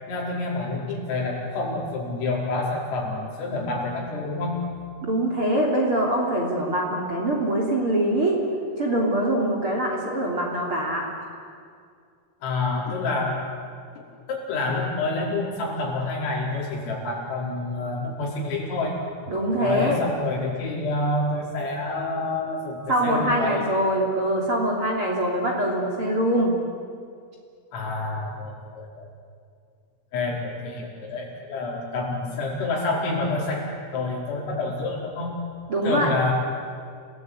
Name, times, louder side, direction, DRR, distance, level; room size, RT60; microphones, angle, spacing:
voice 1, 0.1-4.6 12.4-13.4 14.3-19.0 19.6-23.6 27.7-29.1 30.1-35.4 35.8-36.3, left 2 dB, 80° left, -3 dB, 7.7 m, -28 dB
voice 2, 5.1-8.4 8.8-11.1 19.3-20.0 22.9-26.5 35.7-36.1, right 1 dB, 30° right, -1 dB, 3.3 m, -23 dB
28.0 x 19.0 x 9.7 m, 2.2 s
omnidirectional pair, 5.9 m